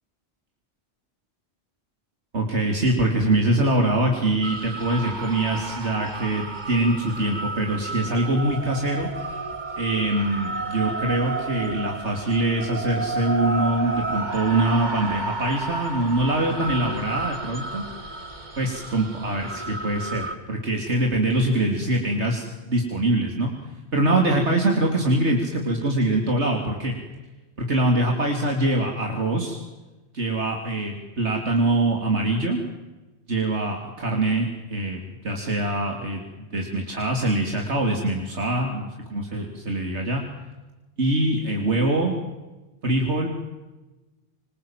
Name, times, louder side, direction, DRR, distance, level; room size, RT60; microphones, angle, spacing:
voice 1, 2.3-9.1 9.8-17.8 18.6-23.5 23.9-26.9 27.7-29.6 30.1-32.6 33.3-40.2 41.0-42.2 42.8-43.3, right 1 dB, 85° right, 2 dB, 3.7 m, -24 dB
sound 1, 4.4-20.3, right 3 dB, 40° right, 2.3 m, -32 dB
28.0 x 26.0 x 7.6 m, 1.1 s
omnidirectional pair, 1.1 m